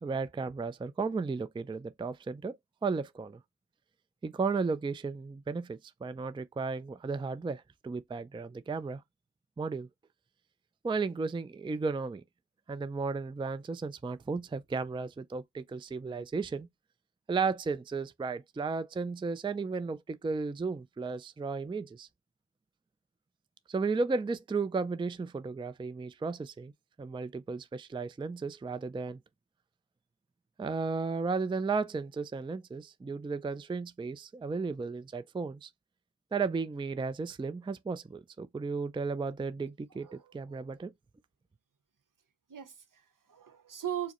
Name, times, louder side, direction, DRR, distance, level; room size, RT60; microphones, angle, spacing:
voice 1, 0.0-3.4 4.2-9.0 9.6-9.9 10.8-12.2 12.7-16.7 17.3-22.1 23.7-26.7 27.0-29.2 30.6-35.7 36.3-40.9, right 4 dB, 15° right, 0.4 m, -34 dB
voice 2, 39.9-40.7 42.5-44.1, right 10 dB, 70° right, 0.9 m, -40 dB
4.7 x 2.0 x 2.9 m
cardioid pair, 45°, 34 cm